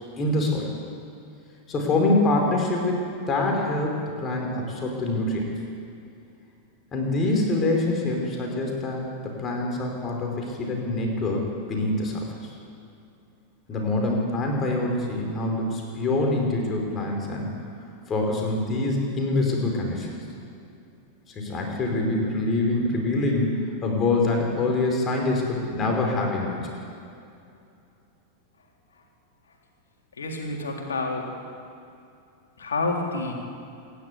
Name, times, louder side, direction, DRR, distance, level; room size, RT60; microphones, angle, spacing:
voice 1, 0.1-0.7 1.7-5.5 6.9-12.5 13.7-17.5 18.1-20.2 21.3-26.7, left 2 dB, 25° left, 0 dB, 4.9 m, -25 dB
voice 2, 30.2-31.3 32.6-33.3, left 3 dB, 70° left, 0 dB, 3.6 m, -29 dB
27.0 x 11.5 x 8.4 m, 2.6 s
figure-of-eight pair, 90°, 0 cm